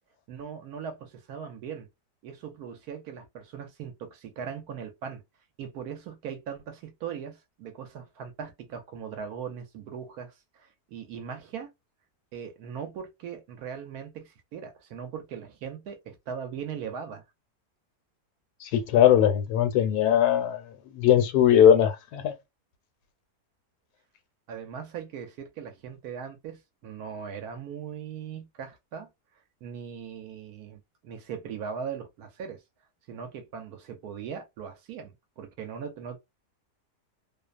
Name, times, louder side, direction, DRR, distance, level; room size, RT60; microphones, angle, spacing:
voice 1, 0.3-1.9 2.2-5.2 5.6-11.7 12.3-17.2 24.5-29.1 29.6-32.6 33.1-36.2, right 7 dB, 70° right, 1.1 m, -39 dB
voice 2, 18.6-22.3, left 10 dB, 75° left, 1.1 m, -20 dB
2.9 x 2.0 x 2.4 m
omnidirectional pair, 1.8 m